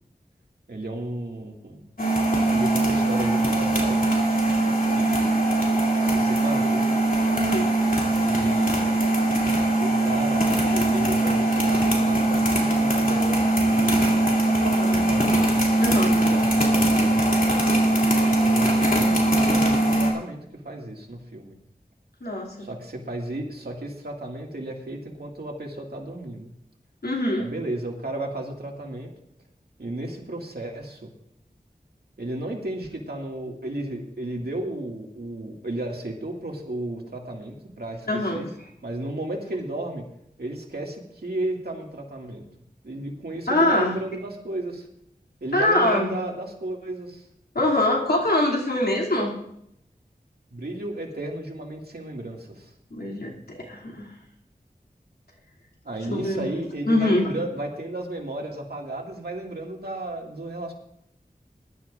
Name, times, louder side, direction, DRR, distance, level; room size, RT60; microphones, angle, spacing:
voice 1, 0.7-1.9 2.5-4.0 4.9-5.3 6.0-6.9 8.2-8.8 9.8-17.5 18.2-21.6 22.6-26.5 27.4-29.1 29.8-31.1 32.2-38.1 38.3-38.5 38.8-40.1 40.4-42.4 42.8-44.9 45.4-47.3 50.5-52.7 55.8-60.7, right 1 dB, 85° right, 0 dB, 2.0 m, -34 dB
sound 1, 2.0-20.1, right 1 dB, 60° left, 2.8 m, -21 dB
voice 2, 7.3-7.7 15.8-16.1 22.2-22.7 27.0-27.5 38.1-38.5 43.5-44.0 45.5-46.2 47.5-49.3 52.9-54.1 56.1-56.5 56.9-57.3, left 1 dB, 75° left, -2 dB, 2.6 m, -23 dB
21.5 x 11.5 x 2.5 m, 0.75 s
wide cardioid pair, 55°, 16 cm